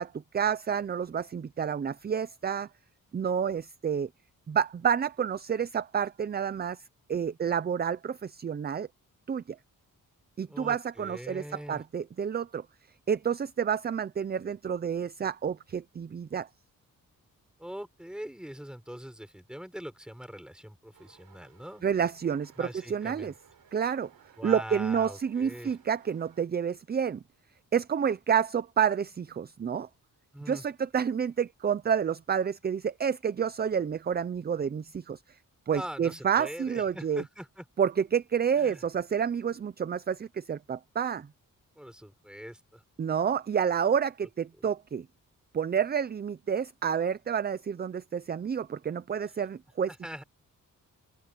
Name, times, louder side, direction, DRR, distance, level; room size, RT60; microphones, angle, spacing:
voice 1, 0.0-2.7 3.1-4.1 4.5-6.8 7.1-8.9 9.3-9.6 10.4-11.4 11.7-12.6 13.1-16.5 21.8-23.3 23.7-24.1 24.4-27.2 27.7-29.9 30.5-35.2 35.7-37.2 37.8-41.3 43.0-45.1 45.5-49.9, right 7 dB, 30° right, 0.4 m, -29 dB
voice 2, 10.5-11.8 17.6-21.8 22.6-23.4 24.4-25.8 30.3-30.6 35.7-37.6 38.5-38.8 41.8-42.8 44.6-44.7 49.9-50.2, equal, ahead, 5.1 m, -42 dB
sound 1, 20.9-26.4, right 8 dB, 80° right, 6.3 m, -60 dB
open air
wide cardioid pair, 170°, 34 cm